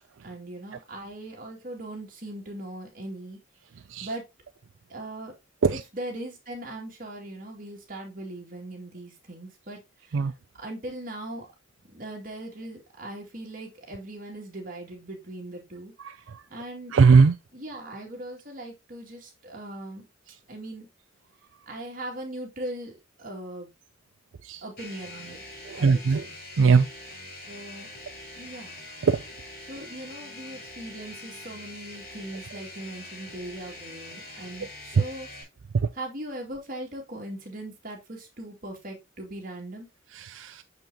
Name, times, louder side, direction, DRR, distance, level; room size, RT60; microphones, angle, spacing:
voice 1, 0.2-3.4 4.0-4.2 4.9-5.3 5.7-10.2 10.6-11.5 11.9-15.9 16.5-16.9 17.5-20.1 20.5-20.9 21.7-23.7 24.6-25.4 25.8-26.4 27.5-27.9 28.4-28.8 29.6-35.3 35.9-39.9, right 1 dB, 45° right, 2.4 m, -39 dB
voice 2, 16.9-17.3 24.5-24.6 25.7-26.2 26.6-26.9 29.0-29.2 40.3-40.6, right 5 dB, 85° right, 0.4 m, -19 dB
sound 1, 24.8-35.4, left 2 dB, 50° left, 4.3 m, -43 dB
6.8 x 5.8 x 2.9 m
head